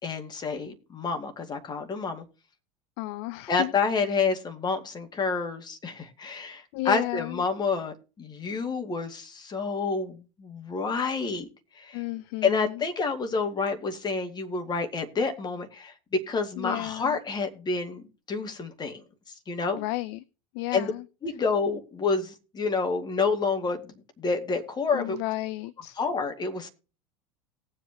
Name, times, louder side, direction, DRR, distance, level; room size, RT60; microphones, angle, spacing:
voice 1, 0.0-2.3 3.5-11.5 11.8-12.0 12.4-19.8 20.7-20.9 21.2-25.2 26.0-26.7, left 4 dB, 20° left, 2.2 m, -29 dB
voice 2, 3.0-3.7 6.7-7.4 11.9-12.8 16.6-17.2 19.7-20.2 20.5-21.0 24.9-26.0, left 19 dB, 45° left, 0.5 m, -33 dB
19.0 x 7.7 x 2.9 m
figure-of-eight pair, 80°, 19 cm